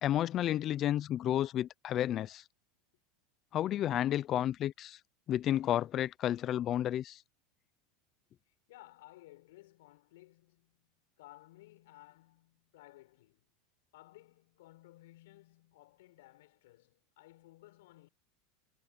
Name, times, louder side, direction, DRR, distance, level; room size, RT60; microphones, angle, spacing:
voice 1, 0.0-2.4 3.5-5.0 5.3-7.2, left 12 dB, 40° left, 0.5 m, -31 dB
voice 2, 8.5-13.5 13.9-18.1, left 17 dB, 80° left, 6.4 m, -58 dB
supercardioid pair, 130°, 0 cm